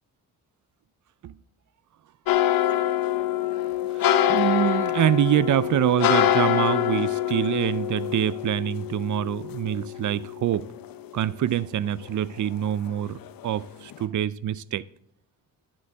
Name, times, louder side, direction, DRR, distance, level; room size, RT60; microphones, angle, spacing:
sound 1, 2.3-11.5 11.9-12.9 13.2-13.6 13.9-14.0, left 11 dB, 70° left, 0.7 m, -25 dB
voice 1, 4.2-10.7 11.1-14.8, right 11 dB, 55° right, 0.5 m, -25 dB
11.0 x 9.8 x 3.5 m
cardioid pair, 75°, 36 cm